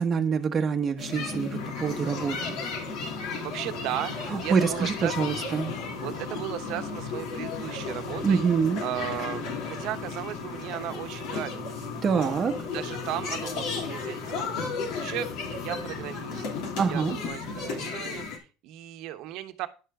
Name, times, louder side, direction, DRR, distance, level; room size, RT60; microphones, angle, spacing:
voice 1, 0.0-2.6 4.3-5.7 8.2-8.8 12.0-12.5 16.8-17.2, right 6 dB, 35° right, 1.1 m, -26 dB
sound 1, 1.0-18.4, left 5 dB, 70° left, 3.1 m, -35 dB
sound 2, 1.5-17.3, left 3 dB, 90° left, 3.9 m, -41 dB
voice 2, 3.4-5.4 6.0-8.4 8.8-12.3 12.7-14.4 14.9-16.5 16.9-19.7, right 14 dB, 70° right, 1.0 m, -36 dB
10.5 x 5.6 x 4.9 m
supercardioid pair, 105°, 0 cm